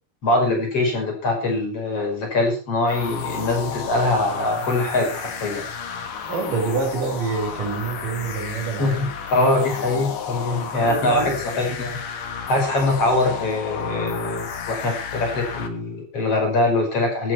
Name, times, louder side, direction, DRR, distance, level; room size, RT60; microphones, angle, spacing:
voice 1, 0.2-5.7 8.8-12.0 12.5-17.3, left 2 dB, 45° left, 1 dB, 6.8 m, -23 dB
sound 1, 2.9-15.7, left 6 dB, 85° left, 3.5 m, -32 dB
voice 2, 6.3-9.1 10.5-11.3, right 4 dB, 85° right, 3 dB, 6.5 m, -27 dB
15.0 x 13.5 x 4.7 m, 0.35 s
omnidirectional pair, 3.7 m